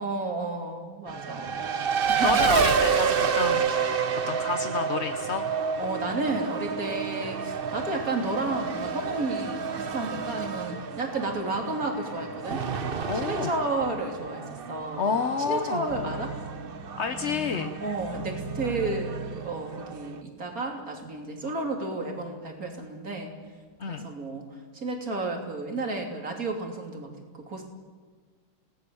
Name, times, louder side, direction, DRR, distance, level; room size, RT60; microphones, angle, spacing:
voice 1, 0.0-1.6 2.1-2.6 5.8-15.1 15.4-16.3 17.8-23.3 23.9-24.4 24.7-27.7, right 2 dB, 40° right, 2 dB, 3.5 m, -32 dB
Race car auto racing, 1.1-20.2, right 6 dB, 65° right, 0.5 m, -30 dB
voice 2, 2.2-3.7 4.3-5.4 13.1-13.5 15.0-15.9 17.0-17.7 23.8-24.1, left 5 dB, 45° left, 7 dB, 0.9 m, -29 dB
sound 1, 15.9-20.7 21.4-21.5 22.7-23.2 23.9-24.3, right 3 dB, 15° right, 1.4 m, -39 dB
29.0 x 19.0 x 7.1 m, 1.5 s
omnidirectional pair, 2.4 m